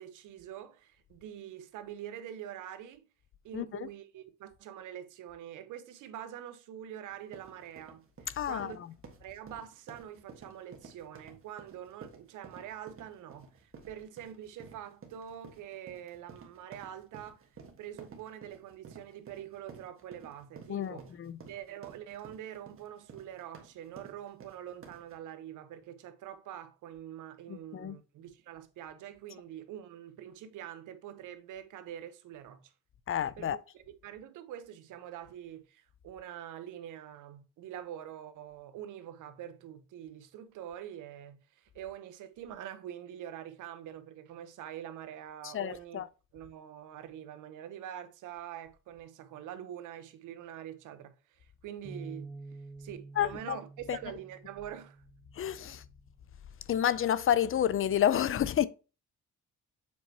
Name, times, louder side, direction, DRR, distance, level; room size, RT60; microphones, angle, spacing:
voice 1, 0.0-3.0 3.4-8.8 9.2-17.5 17.8-21.2 21.5-32.7 33.4-46.0 46.3-52.3 52.8-55.0, right 10 dB, 85° right, 0.9 m, -45 dB
voice 2, 3.5-3.9 8.4-8.7 20.7-21.4 27.5-28.0 33.1-33.6 45.4-46.1 53.2-53.6 53.9-54.0 55.3-55.8 56.7-58.7, left 10 dB, 45° left, 0.5 m, -29 dB
sound 1, 7.1-25.2, right 5 dB, 45° right, 1.5 m, -53 dB
Bass guitar, 51.8-56.3 56.9-58.1, right 3 dB, 15° right, 1.4 m, -50 dB
7.4 x 4.5 x 2.9 m
cardioid pair, 90°, 30 cm